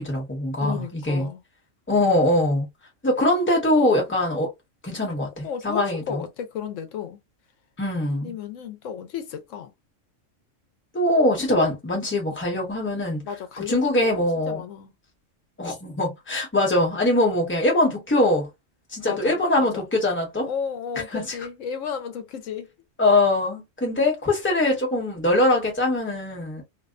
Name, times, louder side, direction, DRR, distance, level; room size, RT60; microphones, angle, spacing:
voice 1, 0.0-1.3 1.9-2.7 3.0-4.5 4.8-6.2 7.8-8.3 10.9-13.2 13.7-14.6 15.6-18.5 18.9-20.5 21.1-21.2 23.0-26.6, left 1 dB, 10° left, 0.9 m, -22 dB
voice 2, 0.5-1.4 5.4-7.2 8.2-9.7 13.2-14.9 19.1-19.9 20.5-22.7, left 7 dB, 80° left, 1.0 m, -33 dB
2.7 x 2.1 x 2.4 m
omnidirectional pair, 1.3 m